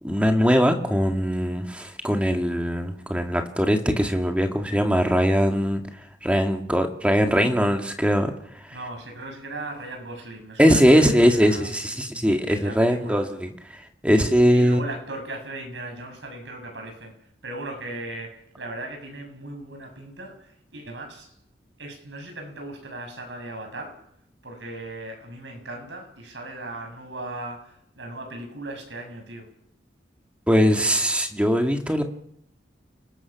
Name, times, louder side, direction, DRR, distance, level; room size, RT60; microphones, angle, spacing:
voice 1, 0.0-5.8 6.2-8.3 8.6-8.7 10.6-13.5 14.0-14.8 30.5-32.0, equal, 5° right, 2.1 m, -21 dB
voice 2, 8.7-11.7 12.5-13.3 14.5-17.1 17.4-21.3 21.8-24.0 24.4-29.5, right 2 dB, 80° right, 7.0 m, -37 dB
29.5 x 19.5 x 6.0 m
head